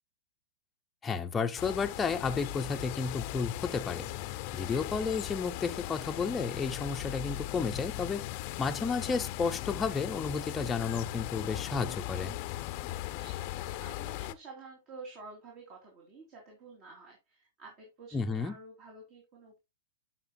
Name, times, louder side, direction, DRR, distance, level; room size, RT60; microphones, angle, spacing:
voice 1, 1.0-4.1 4.5-8.2 8.6-12.3 18.1-18.6, left 5 dB, 15° left, 0.7 m, -32 dB
sound 1, 1.6-14.3, left 16 dB, 50° left, 0.6 m, -38 dB
voice 2, 12.7-19.6, right 3 dB, 45° right, 3.2 m, -50 dB
11.5 x 5.9 x 2.3 m
hypercardioid pair, 130°, 0 cm